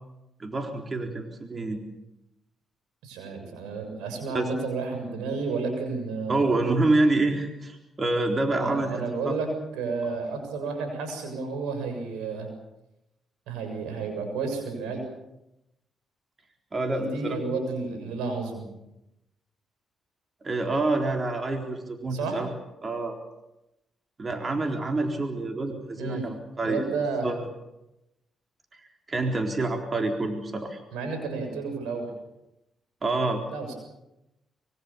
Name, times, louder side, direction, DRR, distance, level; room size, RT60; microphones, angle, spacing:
voice 1, 0.4-1.8 4.3-4.5 6.3-9.3 16.7-17.4 20.4-22.5 22.8-23.2 24.2-26.8 27.2-27.4 29.1-30.8 33.0-33.4, right 2 dB, 40° right, 3 dB, 4.0 m, -27 dB
voice 2, 3.0-6.5 8.6-9.5 9.7-12.5 13.5-15.0 16.9-18.6 22.1-22.4 26.0-26.2 26.6-27.3 30.9-32.1 33.5-33.7, right 4 dB, 85° right, 5 dB, 7.1 m, -31 dB
25.0 x 23.5 x 7.2 m, 0.92 s
supercardioid pair, 50°, 0 cm